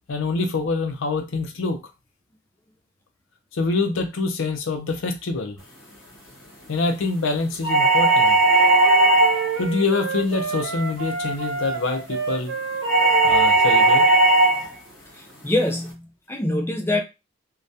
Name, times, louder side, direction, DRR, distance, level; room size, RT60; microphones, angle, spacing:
voice 1, 0.1-1.8 3.5-5.6 6.7-8.4 9.6-12.5 13.2-14.1 14.6-14.7, left 3 dB, 75° left, 0.5 m, -25 dB
sound 1, 7.6-9.6 12.8-14.6, right 2 dB, 55° left, 0.9 m, -16 dB
sound 2, 8.5-14.3, right 5 dB, 65° right, 0.4 m, -30 dB
voice 2, 15.4-17.0, left 1 dB, 10° left, 0.4 m, -24 dB
2.2 x 2.1 x 2.7 m
head